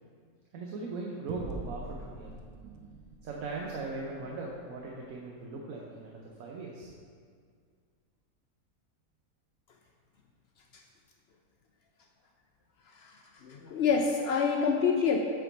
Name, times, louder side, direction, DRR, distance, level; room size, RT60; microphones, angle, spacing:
voice 1, 0.5-2.3 3.2-6.9, right 3 dB, 70° right, -1 dB, 1.1 m, -39 dB
the mother load, 1.3-6.1, right 3 dB, 90° right, 1.2 m, -46 dB
voice 2, 13.4-15.2, left 5 dB, 85° left, 1 dB, 0.5 m, -26 dB
7.5 x 4.5 x 4.0 m, 2.1 s
omnidirectional pair, 1.6 m